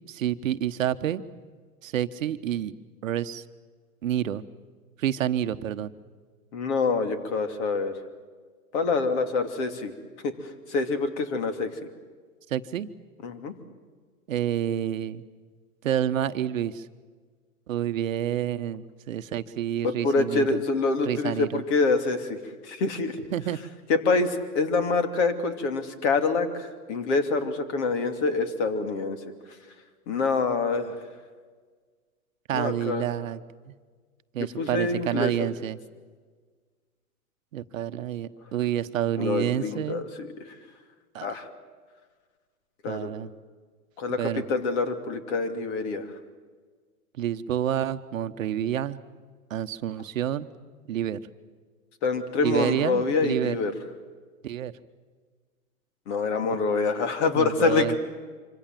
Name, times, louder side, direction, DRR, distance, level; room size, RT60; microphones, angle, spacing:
voice 1, 0.1-1.2 1.8-2.7 3.0-3.4 4.0-4.4 5.0-5.9 12.5-12.9 14.3-15.2 15.8-16.8 17.7-20.6 21.1-21.6 23.3-23.6 32.5-33.4 33.7-33.8 34.3-35.8 37.5-40.1 41.1-41.3 42.9-43.3 44.2-44.4 47.2-49.0 49.5-50.5 50.9-51.2 52.4-53.6 54.4-54.7 57.3-58.0, right 11 dB, 60° right, 11 dB, 1.1 m, -28 dB
voice 2, 6.5-8.0 8.7-9.9 10.2-11.7 13.2-13.5 19.8-23.2 23.9-29.2 30.1-31.0 32.5-33.3 34.4-35.5 39.2-40.6 41.2-41.5 42.8-43.1 44.0-46.1 52.0-53.7 56.1-58.0, left 4 dB, 45° left, 8 dB, 2.9 m, -26 dB
26.0 x 25.0 x 7.5 m, 1.5 s
hypercardioid pair, 115°, 46 cm